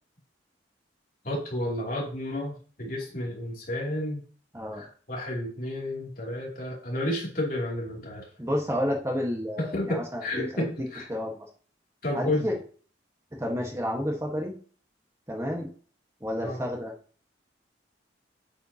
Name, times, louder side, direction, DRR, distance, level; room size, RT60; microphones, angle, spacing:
voice 1, 1.2-4.2 4.7-8.3 9.6-11.1 12.0-12.5 16.4-16.6, left 1 dB, 50° left, -2 dB, 2.8 m, -31 dB
voice 2, 8.4-10.7 11.1-11.5 12.1-12.6 13.3-14.5 15.3-15.7 16.2-16.9, equal, 15° right, 0 dB, 1.4 m, -30 dB
8.4 x 7.4 x 2.8 m, 0.42 s
head